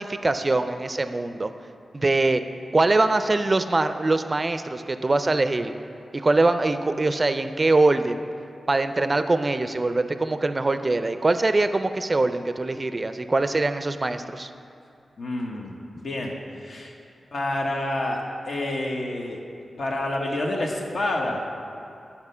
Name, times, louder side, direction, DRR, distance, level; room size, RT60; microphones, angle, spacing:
voice 1, 0.0-1.5 1.9-2.4 2.7-5.7 6.1-8.2 8.7-14.5, right 2 dB, 35° right, 10 dB, 0.4 m, -23 dB
voice 2, 15.2-16.9 17.3-19.4 19.8-21.4, left 1 dB, 70° left, 0 dB, 1.1 m, -28 dB
9.6 x 4.3 x 5.5 m, 2.5 s
cardioid pair, 75°, 0 cm